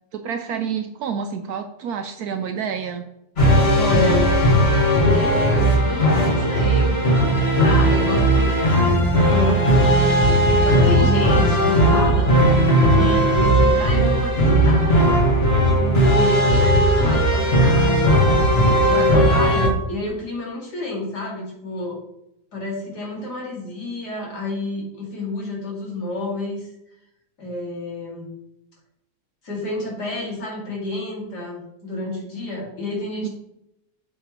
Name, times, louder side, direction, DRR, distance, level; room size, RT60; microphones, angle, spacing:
voice 1, 0.1-3.1 33.2-33.3, right 7 dB, 70° right, 6 dB, 1.0 m, -28 dB
sound 1, 3.4-19.7, equal, 40° left, 1.7 m, -17 dB
voice 2, 3.7-4.4 5.1-7.3 7.6-10.2 10.6-12.5 12.9-14.9 15.8-18.2 18.9-22.0 22.5-26.7 27.4-28.3 29.4-33.3, left 2 dB, 75° left, -3 dB, 2.8 m, -29 dB
8.3 x 6.7 x 3.0 m, 0.82 s
omnidirectional pair, 1.8 m